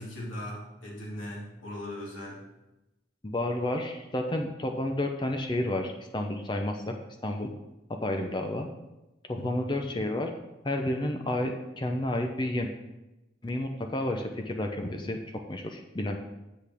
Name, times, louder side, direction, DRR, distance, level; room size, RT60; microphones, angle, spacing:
voice 1, 0.0-2.4 9.4-9.7, left 1 dB, 85° left, -5 dB, 2.2 m, -39 dB
voice 2, 3.2-6.9 7.2-7.5 7.9-8.7 9.3-10.3 10.6-12.7 13.4-16.2, left 1 dB, 25° left, 3 dB, 0.6 m, -31 dB
8.2 x 8.0 x 3.5 m, 0.98 s
head